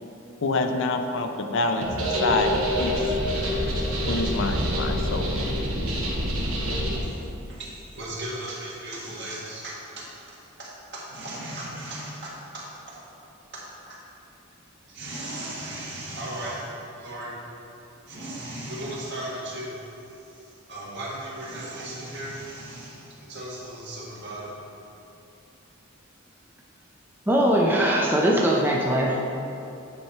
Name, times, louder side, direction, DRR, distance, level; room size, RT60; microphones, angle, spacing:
voice 1, 0.4-3.0 4.1-5.3, left 2 dB, 65° left, 6 dB, 0.6 m, -26 dB
sound 1, 1.8-7.0, equal, 85° right, 1.2 m, -26 dB
voice 2, 7.5-10.1 10.6-13.0 13.5-13.6 14.9-16.6 17.0-17.4 18.1-19.8 20.3-24.5, right 1 dB, 60° right, -6 dB, 1.7 m, -36 dB
voice 3, 27.3-29.3, right 1 dB, 10° right, -2 dB, 0.5 m, -21 dB
8.8 x 4.5 x 4.4 m, 2.8 s
head